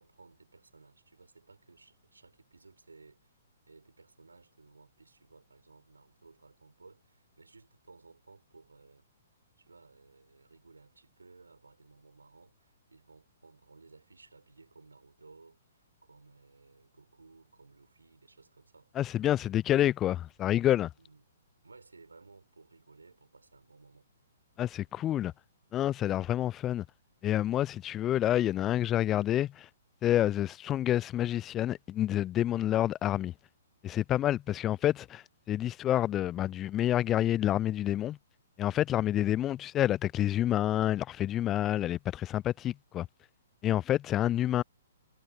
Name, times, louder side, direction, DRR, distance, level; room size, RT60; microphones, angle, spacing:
voice 1, 0.0-3.4 3.7-9.0 9.6-18.9 21.0-21.2 21.6-24.1, right 3 dB, 85° right, 5.1 m, -58 dB
voice 2, 19.0-20.9 24.6-25.3 25.7-26.9 27.2-29.7 30.0-33.3 33.8-38.2 38.6-43.1 43.6-44.6, left 12 dB, 20° left, 0.3 m, -28 dB
figure-of-eight pair, 125°, 0 cm